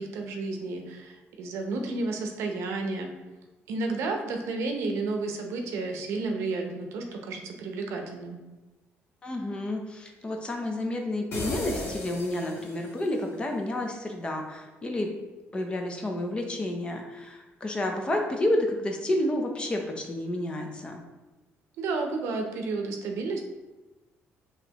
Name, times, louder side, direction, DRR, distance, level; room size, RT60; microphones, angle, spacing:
voice 1, 0.0-3.1 3.7-8.4 21.8-23.5, right 3 dB, 80° right, 3 dB, 0.6 m, -31 dB
voice 2, 9.2-15.1 15.5-21.0, left 1 dB, 20° left, 2 dB, 0.6 m, -30 dB
sound 1, 11.3-13.1, left 2 dB, 55° left, 1.0 m, -35 dB
5.5 x 3.0 x 2.9 m, 1.1 s
cardioid pair, 140°, 5 cm